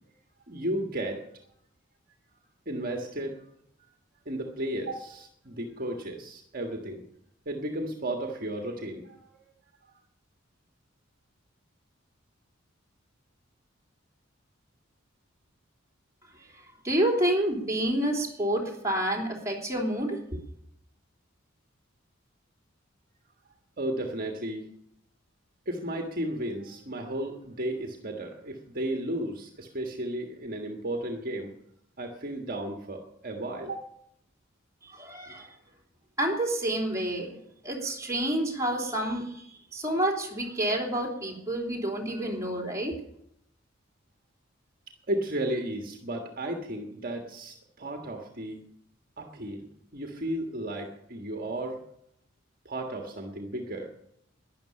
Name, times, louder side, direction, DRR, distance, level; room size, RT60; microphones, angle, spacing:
voice 1, 0.5-1.2 2.6-3.4 4.2-7.0 7.4-9.2 23.8-24.7 25.6-31.5 32.0-33.9 45.1-48.6 49.2-49.7 49.9-51.8 52.6-53.9, right 1 dB, 45° right, 2 dB, 1.6 m, -34 dB
voice 2, 16.5-20.4 34.9-35.5 36.2-37.4 37.6-43.0, right 1 dB, 15° right, -1 dB, 3.3 m, -29 dB
12.5 x 10.5 x 8.6 m, 0.74 s
head